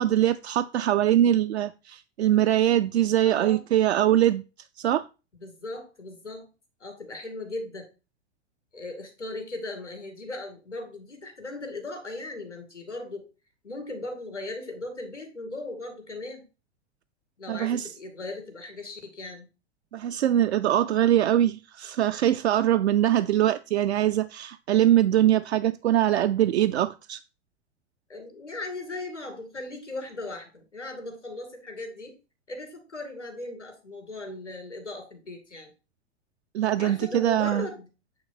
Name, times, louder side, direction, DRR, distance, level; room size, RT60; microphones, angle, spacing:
voice 1, 0.0-4.4 4.8-5.0 17.5-17.9 19.9-27.2 36.5-37.7, right 12 dB, 70° right, 0.5 m, -22 dB
voice 2, 3.3-3.6 5.4-6.4 6.8-7.9 8.7-13.2 13.6-16.4 17.4-19.5 28.1-32.1 32.5-35.7 36.8-37.9, left 2 dB, 90° left, 2.3 m, -38 dB
8.7 x 3.3 x 5.8 m
figure-of-eight pair, 95°, 34 cm